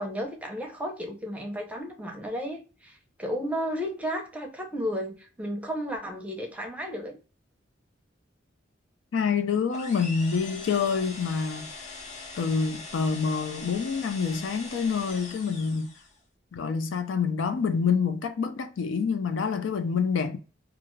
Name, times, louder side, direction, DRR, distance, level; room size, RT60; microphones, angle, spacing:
voice 1, 0.0-7.2, equal, 5° right, 0.6 m, -33 dB
voice 2, 9.1-11.7 12.4-15.9 16.5-20.4, left 5 dB, 75° left, 0.4 m, -27 dB
sound 1, 9.7-16.2, left 3 dB, 40° left, 0.7 m, -42 dB
2.4 x 2.3 x 3.0 m
head